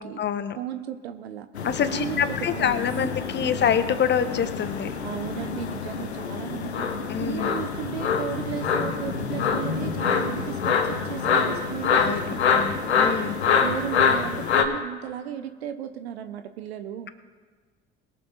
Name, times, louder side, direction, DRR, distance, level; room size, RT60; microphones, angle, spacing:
voice 1, 0.0-0.6 1.6-4.9 7.1-7.5 11.9-13.4, left 8 dB, 35° left, 11 dB, 1.1 m, -26 dB
voice 2, 0.6-1.5 1.9-2.3 2.5-3.1 3.4-3.6 5.0-6.9 7.2-12.7 13.5-17.1, right 10 dB, 70° right, 9 dB, 0.8 m, -35 dB
sound 1, 1.5-14.6, left 6 dB, 80° left, 1.1 m, -26 dB
22.0 x 7.4 x 4.2 m, 1.5 s
figure-of-eight pair, 60°, 33 cm